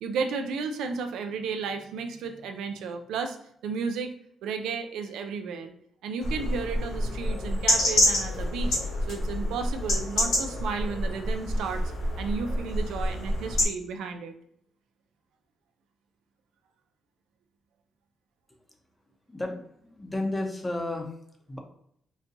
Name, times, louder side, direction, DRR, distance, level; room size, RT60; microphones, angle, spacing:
voice 1, 0.0-3.4 3.6-4.1 4.4-5.7 6.0-8.8 9.1-11.8 12.2-14.3, right 5 dB, 85° right, 6 dB, 0.3 m, -33 dB
sound 1, 6.2-13.6, left 1 dB, 85° left, 1.2 m, -27 dB
voice 2, 19.3-21.1 21.5-21.6, left 2 dB, 20° left, 3 dB, 0.7 m, -32 dB
4.0 x 2.2 x 2.6 m, 0.70 s
cardioid pair, 75°, 0 cm